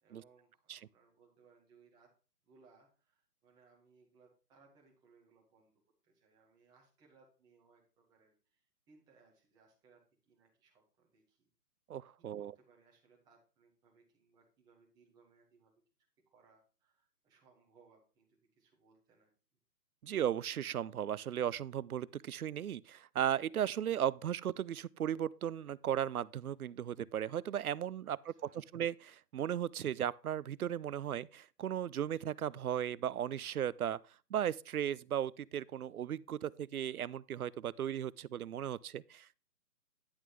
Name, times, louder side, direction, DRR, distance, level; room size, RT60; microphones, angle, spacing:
voice 1, 0.0-2.1 2.5-5.7 6.0-10.0 10.3-11.5 12.4-15.7 16.3-19.3 28.0-28.7, right 4 dB, 10° right, 1.8 m, -67 dB
voice 2, 11.9-12.5 20.0-34.0 34.3-39.4, right 10 dB, 65° right, 0.5 m, -36 dB
10.5 x 7.3 x 3.4 m
hypercardioid pair, 160°, 48 cm